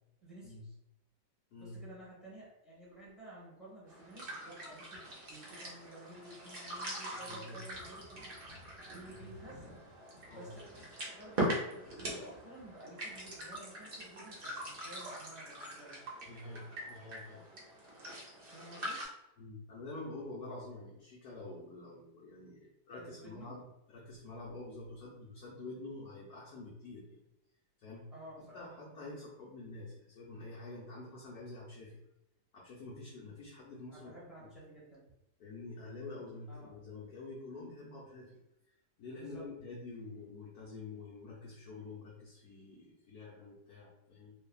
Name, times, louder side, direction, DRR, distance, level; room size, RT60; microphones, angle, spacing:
voice 1, 0.2-0.7 1.6-8.2 8.9-9.7 10.3-16.0 18.5-19.0 23.0-23.5 28.1-28.6 33.9-35.0 36.5-36.7 39.2-39.4, right 1 dB, ahead, -7 dB, 0.9 m, -53 dB
sound 1, 3.9-19.1, right 1 dB, 50° right, 0.7 m, -42 dB
voice 2, 7.1-7.6 9.1-9.3 10.3-10.5 16.2-17.5 19.4-27.2 27.8-28.1 28.5-32.0 32.5-34.5 35.4-38.4 38.7-44.3, left 2 dB, 70° left, -6 dB, 1.0 m, -47 dB
3.2 x 2.2 x 2.3 m, 0.89 s
omnidirectional pair, 1.8 m